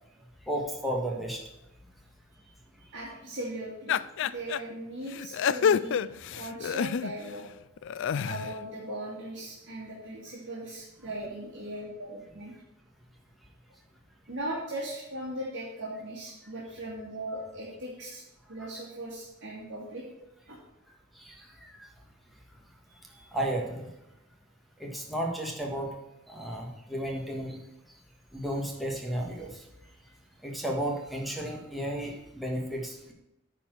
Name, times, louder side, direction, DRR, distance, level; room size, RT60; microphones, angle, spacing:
voice 1, 0.5-1.4 21.2-21.9 23.3-23.9 24.8-25.9 26.3-27.6 28.3-29.6 30.4-33.1, right 1 dB, ahead, -2 dB, 1.7 m, -33 dB
voice 2, 2.3-7.4 8.2-12.5 14.3-18.2 18.5-20.0 20.5-20.6 22.9-23.3, right 1 dB, 60° right, -6 dB, 2.3 m, -39 dB
sound 1, 3.9-4.6 5.1-7.3 7.8-8.5, left 7 dB, 65° left, 0.3 m, -28 dB
9.8 x 4.4 x 7.8 m, 0.90 s
head